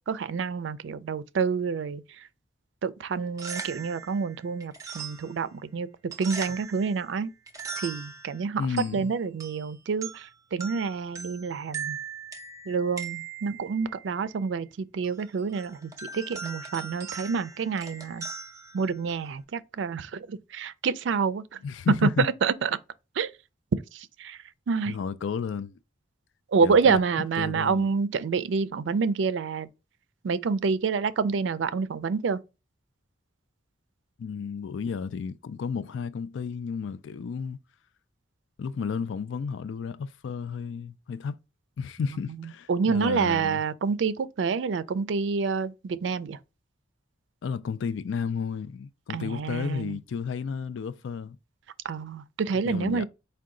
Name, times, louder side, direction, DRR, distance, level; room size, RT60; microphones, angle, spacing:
voice 1, 0.1-2.0 2.8-5.9 6.2-7.3 7.8-8.6 8.9-12.0 12.7-18.3 18.7-21.6 22.2-22.7 23.2-23.3 23.9-24.4 24.7-24.9 26.5-29.7 30.2-32.4 42.7-46.4 49.1-50.0 51.8-53.1, right 5 dB, 75° right, 0.4 m, -28 dB
sound 1, 3.2-19.4, right 5 dB, 15° right, 0.5 m, -41 dB
voice 2, 8.6-9.1 21.6-22.3 24.9-25.8 26.6-27.0 27.4-27.9 34.2-37.6 38.6-41.4 41.8-43.6 47.4-51.4 52.6-53.1, left 6 dB, 80° left, 0.4 m, -32 dB
4.7 x 2.2 x 3.7 m
head